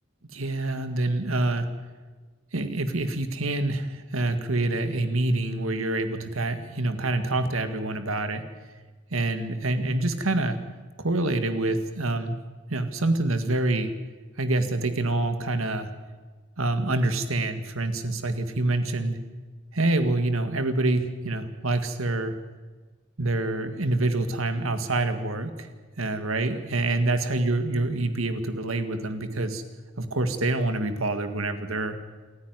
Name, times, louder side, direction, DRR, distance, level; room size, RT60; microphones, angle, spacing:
voice 1, 0.3-1.7 2.5-8.4 9.1-10.6 11.0-12.4 12.7-13.9 14.4-15.9 16.6-19.2 19.7-22.3 23.2-25.7 26.0-29.6 30.0-32.0, right 2 dB, 85° right, 8 dB, 1.9 m, -26 dB
28.0 x 9.8 x 9.5 m, 1.4 s
head